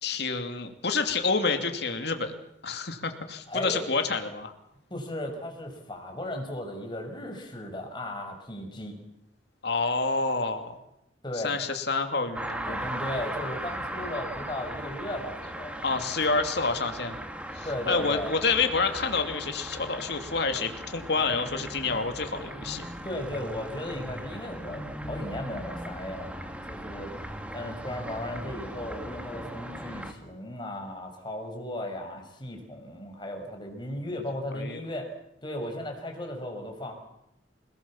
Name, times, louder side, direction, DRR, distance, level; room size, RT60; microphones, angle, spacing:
voice 1, 0.0-2.3 2.6-4.5 9.6-10.8 11.3-12.8 15.8-17.2 17.6-22.8 34.5-34.8, left 4 dB, 60° left, 6 dB, 2.8 m, -28 dB
voice 2, 3.5-3.8 4.9-9.0 11.2-11.6 12.6-15.8 17.6-18.3 23.0-27.1 27.5-35.1 35.4-36.9, left 1 dB, 25° left, 3 dB, 5.7 m, -36 dB
sound 1, 12.3-30.1, right 1 dB, 5° right, 2.5 m, -38 dB
29.5 x 20.0 x 7.3 m, 0.81 s
head